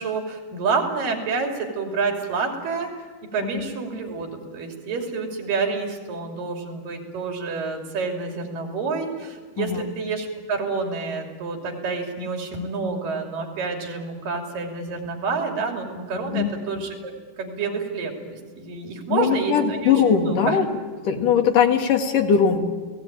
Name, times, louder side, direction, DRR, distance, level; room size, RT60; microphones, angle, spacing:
voice 1, 0.0-2.9 3.3-20.6, right 4 dB, 85° right, 3 dB, 4.8 m, -28 dB
voice 2, 16.1-16.5 19.1-20.7 21.1-22.6, left 7 dB, 75° left, 4 dB, 3.7 m, -20 dB
30.0 x 18.5 x 9.0 m, 1.5 s
omnidirectional pair, 3.8 m